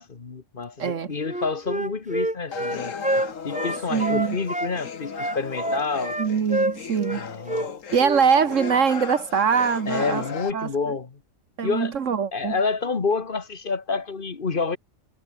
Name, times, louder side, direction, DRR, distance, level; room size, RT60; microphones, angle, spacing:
voice 1, 0.0-6.2 7.1-7.7 9.9-11.2 11.6-11.9 12.3-14.8, left 4 dB, 45° left, 1.6 m, -28 dB
voice 2, 0.8-1.1 3.9-4.4 6.2-7.2 7.9-10.2 10.5-10.7 11.6-12.6, right 6 dB, 75° right, 1.7 m, -22 dB
Wind instrument woodwind instrument, 1.2-4.7 5.1-7.2 7.5-7.7 8.0-8.2 8.5-8.8, right 1 dB, 5° right, 1.0 m, -27 dB
sound 1, 2.5-10.5, left 6 dB, 90° left, 1.9 m, -36 dB
omnidirectional pair, 1.3 m